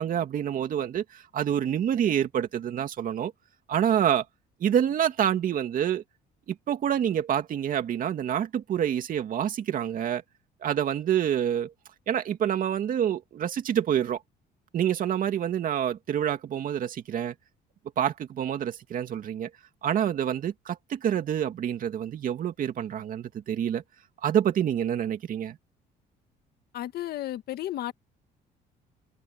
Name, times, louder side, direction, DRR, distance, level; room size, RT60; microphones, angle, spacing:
voice 1, 0.0-3.3 3.7-4.2 4.6-6.0 6.5-10.2 10.6-11.7 12.1-14.2 14.7-17.3 18.0-19.5 19.8-23.8 24.2-25.6, right 9 dB, 55° right, 2.5 m, -27 dB
voice 2, 26.7-27.9, left 13 dB, 70° left, 1.9 m, -33 dB
open air
cardioid pair, 110°, 17 cm